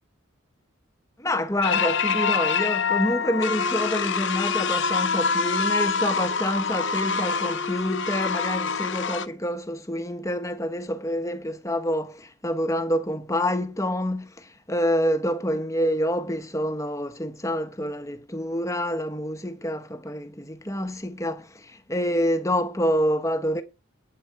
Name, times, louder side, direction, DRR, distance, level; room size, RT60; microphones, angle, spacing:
voice 1, 1.2-23.6, equal, 15° left, 1.2 m, -27 dB
sound 1, 1.6-9.3, left 5 dB, 60° left, 0.9 m, -25 dB
8.8 x 8.2 x 8.2 m
head